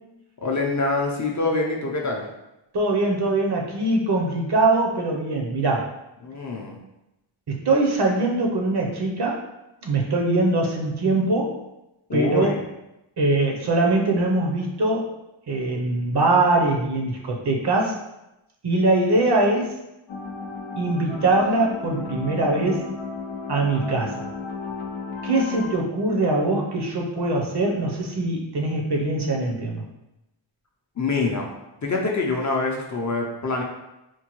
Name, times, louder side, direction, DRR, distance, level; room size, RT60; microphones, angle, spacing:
voice 1, 0.4-2.2 6.2-6.8 12.1-12.6 31.0-31.5 31.8-33.6, left 3 dB, 40° left, -1 dB, 0.5 m, -25 dB
voice 2, 2.7-5.9 7.5-9.4 9.8-11.6 12.1-12.5 13.2-15.2 15.5-18.0 18.6-19.8 20.7-22.9 23.5-24.3 25.2-29.8, right 2 dB, 55° right, 0 dB, 0.7 m, -22 dB
sound 1, 20.1-25.8, left 4 dB, 85° left, 0.6 m, -33 dB
4.4 x 2.2 x 2.9 m, 0.92 s
wide cardioid pair, 135°, 47 cm